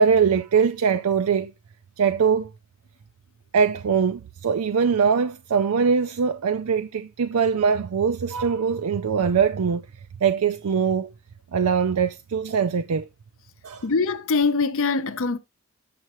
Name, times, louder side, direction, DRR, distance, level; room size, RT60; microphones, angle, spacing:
voice 1, 0.0-1.5 2.0-2.5 3.5-9.9 10.2-11.1 11.5-13.1 13.6-13.8, right 6 dB, 90° right, 0.4 m, -22 dB
voice 2, 13.8-15.4, left 4 dB, 65° left, 0.7 m, -23 dB
7.6 x 6.6 x 3.0 m
head